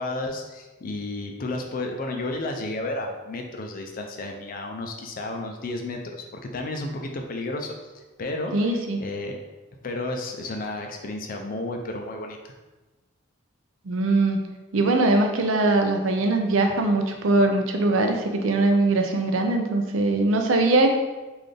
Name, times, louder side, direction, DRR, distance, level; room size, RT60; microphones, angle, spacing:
voice 1, 0.0-7.9 8.2-9.4 9.8-12.5, left 2 dB, 45° left, 3 dB, 0.4 m, -32 dB
voice 2, 8.5-9.0 13.8-14.4 14.7-21.0, right 2 dB, 75° right, 4 dB, 0.5 m, -21 dB
3.9 x 2.5 x 3.3 m, 1.2 s
head